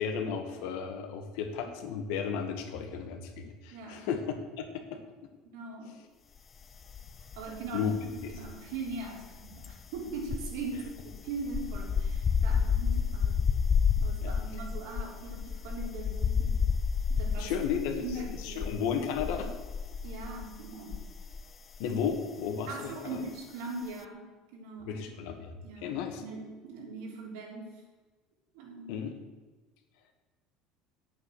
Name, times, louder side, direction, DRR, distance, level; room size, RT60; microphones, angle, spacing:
voice 1, 0.0-4.2 4.6-5.0 7.7-8.0 8.2-8.3 14.2-14.3 17.4-18.0 18.4-19.5 21.8-23.2 24.9-26.2 28.9-29.1, left 7 dB, 70° left, 5 dB, 1.8 m, -34 dB
voice 2, 3.7-4.1 5.4-6.1 7.4-13.5 14.0-16.7 17.1-17.6 18.0-18.9 20.0-21.0 22.7-25.1 25.6-27.8 28.5-29.1, right 3 dB, 80° right, -1 dB, 3.7 m, -41 dB
sound 1, 6.9-7.7 7.9-21.5 21.7-22.0, left 6 dB, 25° left, 0.4 m, -30 dB
10.0 x 8.4 x 6.6 m, 1.3 s
cardioid pair, 170°, 0 cm